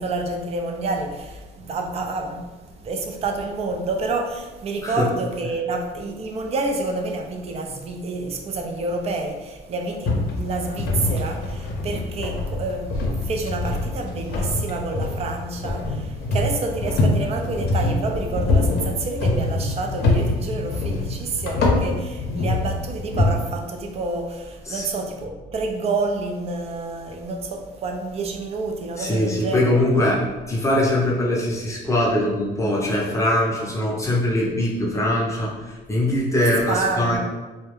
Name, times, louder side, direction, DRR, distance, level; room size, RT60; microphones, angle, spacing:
voice 1, 0.0-29.7 36.7-37.2, right 3 dB, 40° right, 3 dB, 0.4 m, -28 dB
sound 1, 10.1-23.3, left 2 dB, 70° left, 0.6 m, -24 dB
voice 2, 29.0-37.2, left 1 dB, 15° left, -5 dB, 0.6 m, -22 dB
2.2 x 2.1 x 3.1 m, 1.2 s
cardioid pair, 110°, 17 cm